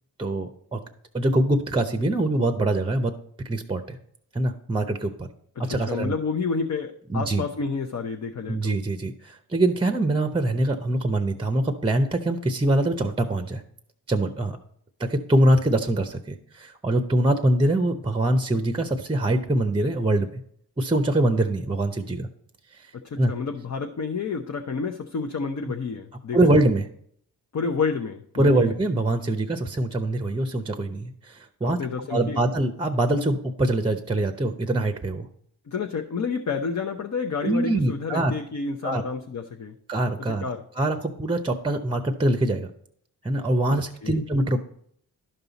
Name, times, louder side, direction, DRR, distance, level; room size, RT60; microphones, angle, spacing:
voice 1, 0.2-0.8 1.1-3.1 3.4-4.0 4.3-5.3 5.6-6.1 7.1-7.4 8.5-13.6 14.1-14.6 15.0-20.4 20.8-22.3 22.7-22.9 23.2-23.3 26.3-26.9 28.4-31.8 32.1-35.3 37.4-38.3 38.8-39.0 39.9-40.5 40.8-42.7 43.2-44.6, right 1 dB, 15° right, 8 dB, 0.7 m, -23 dB
voice 2, 5.9-8.8 23.0-26.6 27.5-28.7 31.6-32.4 35.7-39.8 40.2-40.6 43.7-44.2, left 5 dB, 45° left, 2 dB, 0.8 m, -30 dB
11.5 x 5.5 x 4.0 m, 0.65 s
cardioid pair, 70°, 41 cm